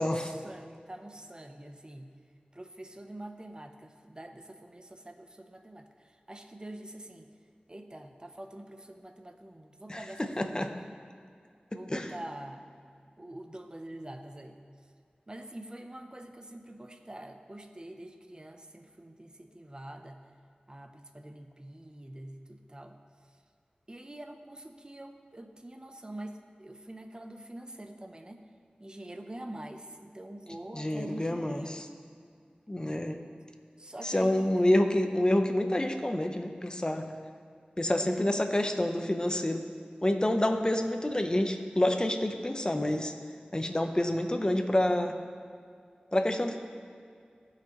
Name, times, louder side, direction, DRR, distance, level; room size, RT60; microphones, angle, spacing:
voice 1, 0.0-2.1 2.5-5.9 6.3-7.3 7.7-10.7 11.7-12.7 13.2-14.6 15.3-20.2 20.7-23.0 23.9-28.4 28.8-31.8 33.8-34.8 37.8-38.3, right 1 dB, 30° right, 5 dB, 0.7 m, -45 dB
voice 2, 9.9-10.7 11.7-12.1 30.7-31.8 32.7-33.2 34.0-37.1 37.8-39.7 40.0-43.1 43.5-45.2 46.1-46.6, left 1 dB, 25° left, 5 dB, 0.8 m, -28 dB
15.5 x 5.8 x 3.0 m, 2.3 s
wide cardioid pair, 45°, 3 cm